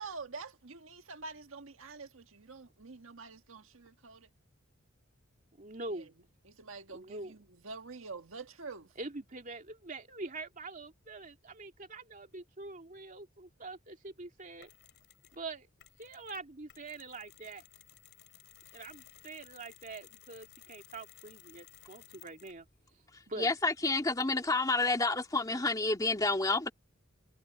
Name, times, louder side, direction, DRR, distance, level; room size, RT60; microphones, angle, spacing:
voice 1, 0.0-4.3 5.9-6.0 6.4-8.9, right 4 dB, 70° right, 1.6 m, -46 dB
voice 2, 5.6-6.1 6.9-7.3 9.0-14.7 15.3-15.7 16.0-17.6 18.7-22.7 23.3-23.5, right 3 dB, 40° right, 2.5 m, -44 dB
Mechanisms, 14.6-15.4 15.8-22.7, left 13 dB, 60° left, 4.3 m, -58 dB
voice 3, 23.1-26.7, left 3 dB, 15° left, 2.1 m, -29 dB
head